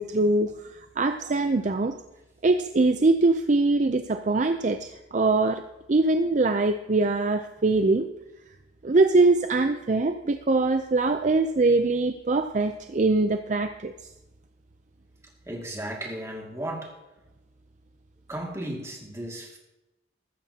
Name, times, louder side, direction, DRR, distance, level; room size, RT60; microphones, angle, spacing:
voice 1, 0.0-1.9 2.4-5.6 5.9-8.1 8.8-13.9, right 3 dB, 45° right, 8 dB, 0.5 m, -23 dB
voice 2, 15.5-17.0 18.3-19.6, right 1 dB, 15° right, 0 dB, 2.2 m, -35 dB
14.5 x 13.0 x 2.8 m, 0.97 s
head